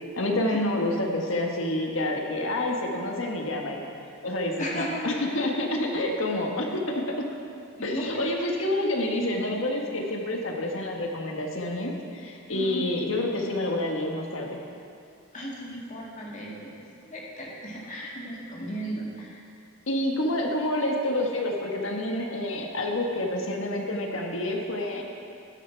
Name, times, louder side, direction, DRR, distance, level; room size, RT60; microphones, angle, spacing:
voice 1, 0.2-3.8 4.2-7.3 7.8-14.6 19.9-25.0, left 1 dB, 75° left, 1 dB, 1.5 m, -28 dB
voice 2, 4.6-5.0 7.8-8.5 12.5-12.9 15.3-19.4, equal, 40° left, -4 dB, 2.3 m, -35 dB
13.5 x 10.0 x 4.6 m, 2.5 s
head